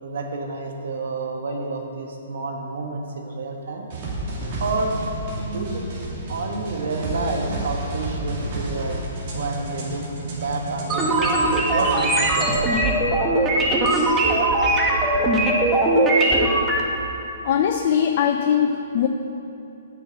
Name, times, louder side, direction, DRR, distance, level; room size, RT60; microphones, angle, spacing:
voice 1, 0.0-3.8 4.6-5.0 5.3-5.9 6.3-9.0 9.3-11.4 11.7-12.9, right 3 dB, 65° right, 2 dB, 1.4 m, -29 dB
sound 1, 3.9-12.6, right 2 dB, 50° right, 2.4 m, -31 dB
sound 2, 10.9-16.8, right 2 dB, 20° right, 1.3 m, -20 dB
voice 2, 17.4-19.1, left 8 dB, 50° left, 5 dB, 0.5 m, -20 dB
8.5 x 6.2 x 7.0 m, 2.8 s
hypercardioid pair, 125°, 0 cm